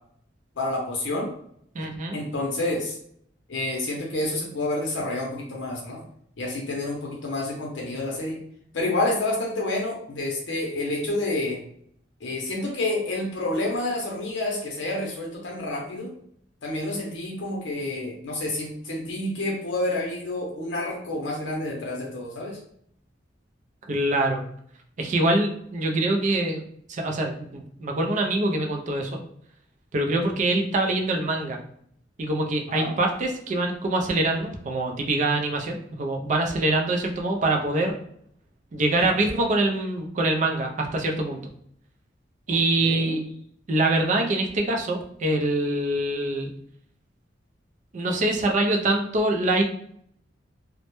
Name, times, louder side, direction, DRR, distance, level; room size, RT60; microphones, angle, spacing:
voice 1, 0.6-1.3 2.1-3.0 3.5-6.0 6.4-8.4 8.7-11.6 12.2-16.1 16.6-22.6 32.7-32.9 42.5-43.2, left 2 dB, 75° left, -2 dB, 0.6 m, -29 dB
voice 2, 1.7-2.2 23.9-24.4 25.0-26.6 26.9-29.2 29.9-31.6 32.2-38.0 38.7-41.4 42.5-43.2 43.7-46.5 47.9-49.6, right 2 dB, 40° right, 2 dB, 0.4 m, -24 dB
2.1 x 2.0 x 2.9 m, 0.68 s
head